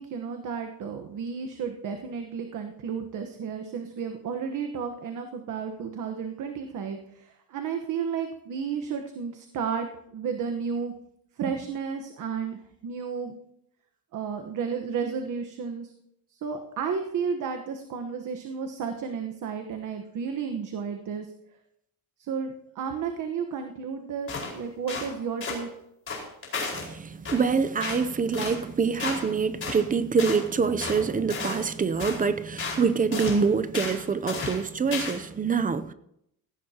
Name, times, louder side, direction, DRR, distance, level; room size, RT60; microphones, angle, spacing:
voice 1, 0.0-9.9 10.1-10.9 11.4-13.3 14.1-15.9 16.4-21.3 22.2-25.7, right 6 dB, 55° right, 5 dB, 1.2 m, -32 dB
sound 1, 24.3-24.5 24.9-25.1 25.4-25.6 26.1-26.9 27.2-27.4 27.8-28.0 28.3-28.6 29.0-29.3 29.6-29.8 30.2-30.4 30.8-31.0 31.3-31.7 32.0-32.2 32.6-32.8 33.1-33.4 33.7-34.0 34.3-34.6 34.9-35.2, left 4 dB, 35° left, 4.8 m, -33 dB
voice 2, 26.7-35.9, right 5 dB, 25° right, 12 dB, 0.6 m, -25 dB
17.5 x 15.5 x 2.9 m, 0.77 s
cardioid pair, 150°, 36 cm